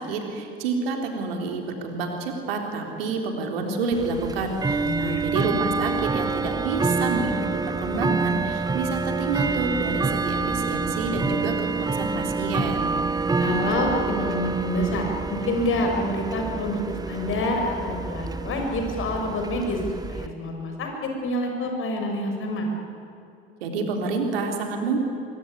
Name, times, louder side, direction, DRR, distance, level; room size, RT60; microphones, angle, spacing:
voice 1, 0.0-7.4 7.6-12.9 23.6-25.0, right 4 dB, 65° right, 3 dB, 4.1 m, -28 dB
Bell / Tick-tock, 3.9-20.3, right 4 dB, 10° right, 1.0 m, -27 dB
voice 2, 4.8-5.2 13.4-19.8 20.1-22.7, left 1 dB, 40° left, 3 dB, 6.5 m, -27 dB
24.5 x 24.0 x 9.9 m, 2.7 s
figure-of-eight pair, 65°, 31 cm